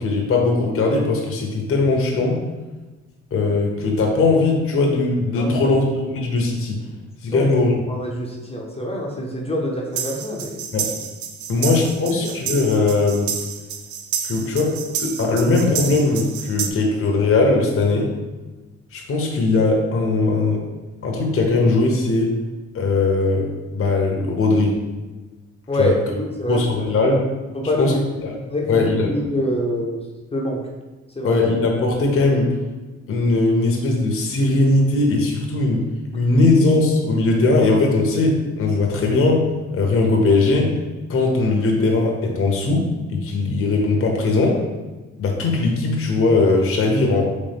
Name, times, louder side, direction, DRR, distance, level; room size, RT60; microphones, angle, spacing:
voice 1, 0.0-2.4 3.3-6.8 7.2-7.7 10.7-10.9 11.5-13.3 14.2-14.7 15.0-18.1 18.9-20.6 21.0-22.3 22.7-24.8 25.8-25.9 26.5-27.2 27.8-27.9 28.2-28.4 28.7-29.1 31.2-32.5 33.1-35.8 36.1-39.4 39.7-40.7 41.1-44.6 45.2-47.3, left 3 dB, 45° left, 0 dB, 0.9 m, -19 dB
voice 2, 5.4-5.7 7.3-7.5 7.9-10.7 12.1-12.3 25.7-26.9 27.5-28.0 28.5-30.0 30.3-30.6 31.2-31.4, equal, 20° left, -1 dB, 0.7 m, -25 dB
sound 1, 10.0-16.7, right 7 dB, 75° right, 0.5 m, -29 dB
4.2 x 3.1 x 3.5 m, 1.2 s
cardioid pair, 90°, 30 cm